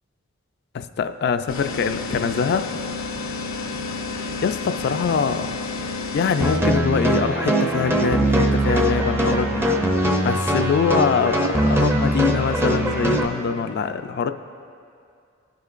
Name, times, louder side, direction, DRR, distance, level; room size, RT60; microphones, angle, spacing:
voice 1, 0.7-2.7 4.2-5.5 6.1-9.7 10.2-14.3, left 6 dB, 50° left, 9 dB, 0.3 m, -23 dB
sound 1, 1.5-6.6, left 3 dB, 80° left, 0.7 m, -30 dB
sound 2, 6.4-13.3, right 1 dB, 10° right, 0.5 m, -21 dB
16.5 x 6.6 x 2.5 m, 2.4 s
head